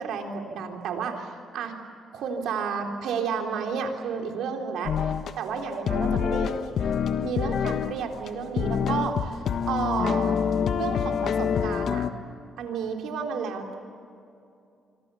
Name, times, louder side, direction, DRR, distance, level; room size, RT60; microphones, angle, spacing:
voice 1, 0.0-1.8 2.1-4.9 5.4-6.9 7.2-10.4 10.7-12.1 12.6-13.7, right 6 dB, 80° right, 3 dB, 3.7 m, -31 dB
sound 1, 4.8-5.3 5.9-8.0 8.3-8.4 8.6-12.1, left 7 dB, 65° left, 1.4 m, -26 dB
26.5 x 25.0 x 7.0 m, 2.5 s
cardioid pair, 90°, 0 cm